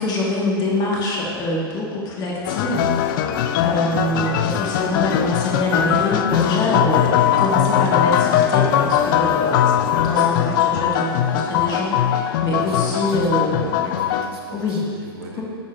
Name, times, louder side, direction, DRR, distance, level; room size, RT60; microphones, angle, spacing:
voice 1, 0.0-2.9 3.6-13.8 14.5-14.8, left 1 dB, 30° left, -3 dB, 1.6 m, -24 dB
sound 1, 2.5-14.3, left 10 dB, 55° left, 0.4 m, -20 dB
voice 2, 12.5-15.4, right 1 dB, 75° right, -1 dB, 1.4 m, -38 dB
10.0 x 6.3 x 2.5 m, 2.3 s
hypercardioid pair, 115°, 13 cm